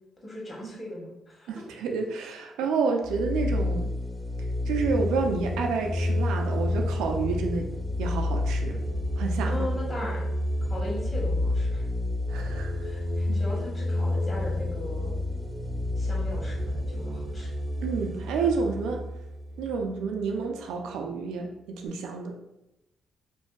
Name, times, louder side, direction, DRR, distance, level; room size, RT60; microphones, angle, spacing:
voice 1, 0.2-1.5 9.4-10.3 10.7-11.8 12.8-15.1 16.0-17.5, left 1 dB, 30° left, -5 dB, 1.1 m, -38 dB
voice 2, 1.5-3.9 4.7-7.7 8.0-8.8 9.2-9.7 12.3-12.9 13.3-13.4 17.8-19.0 19.6-22.4, right 4 dB, 90° right, 3 dB, 0.3 m, -29 dB
sound 1, 3.0-20.4, left 1 dB, 15° right, 0.4 m, -29 dB
2.5 x 2.2 x 2.2 m, 0.90 s
cardioid pair, 90°, 0 cm